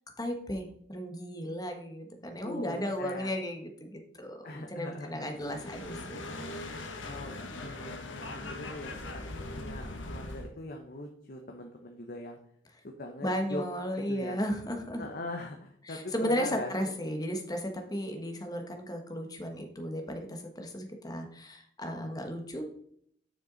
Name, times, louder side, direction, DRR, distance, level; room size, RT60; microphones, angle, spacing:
voice 1, 0.2-6.4 13.2-15.0 15.8-22.6, equal, 20° left, 4 dB, 1.3 m, -35 dB
voice 2, 2.4-3.3 4.4-5.2 7.0-12.4 12.8-13.6 14.1-14.4 15.0-16.7, left 2 dB, 50° left, 3 dB, 0.9 m, -41 dB
sound 1, 5.3-10.5, left 2 dB, 75° left, 1.2 m, -40 dB
7.5 x 6.1 x 3.9 m, 0.66 s
head